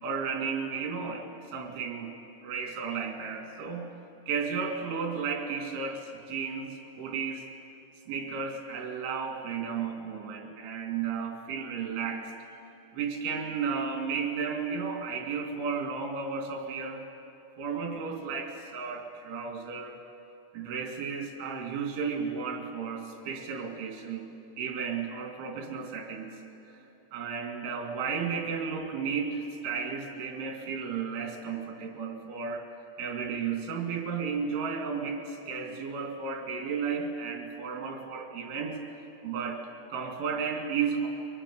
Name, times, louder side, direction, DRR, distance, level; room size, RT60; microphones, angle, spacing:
voice 1, 0.0-1.2 1.5-2.2 2.4-3.9 4.3-7.4 8.1-12.3 12.9-17.0 17.6-20.0 20.5-24.3 24.6-26.4 27.1-32.7 33.0-38.8 39.2-41.1, right 6 dB, 85° right, 2 dB, 4.9 m, -33 dB
24.0 x 20.0 x 8.5 m, 2.9 s
omnidirectional pair, 5.4 m